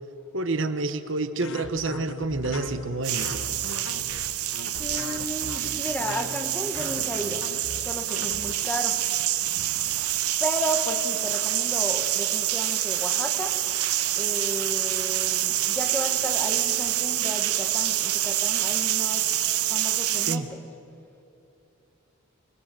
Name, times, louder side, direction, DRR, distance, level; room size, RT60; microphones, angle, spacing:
voice 1, 0.3-3.6 20.3-20.5, right 2 dB, 55° right, 10 dB, 1.0 m, -29 dB
sound 1, 1.4-8.5, left 3 dB, 65° left, 1.1 m, -39 dB
sound 2, 3.0-20.4, right 13 dB, 90° right, 0.9 m, -26 dB
voice 2, 4.8-7.5 7.8-9.0 10.4-13.6 14.2-19.3 19.7-20.6, equal, 10° left, 5 dB, 1.3 m, -33 dB
25.5 x 20.5 x 7.6 m, 2.9 s
head